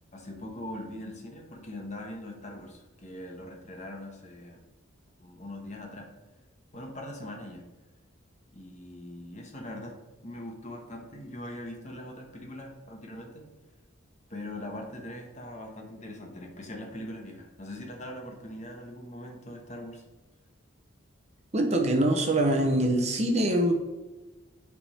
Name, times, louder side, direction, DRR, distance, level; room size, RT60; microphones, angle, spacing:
voice 1, 0.1-4.6 5.2-6.1 6.7-7.6 8.5-10.0 10.2-13.5 14.3-20.0, left 1 dB, 35° left, 2 dB, 1.1 m, -41 dB
voice 2, 21.5-23.7, right 1 dB, 30° right, 3 dB, 0.8 m, -24 dB
10.0 x 3.5 x 4.2 m, 1.1 s
head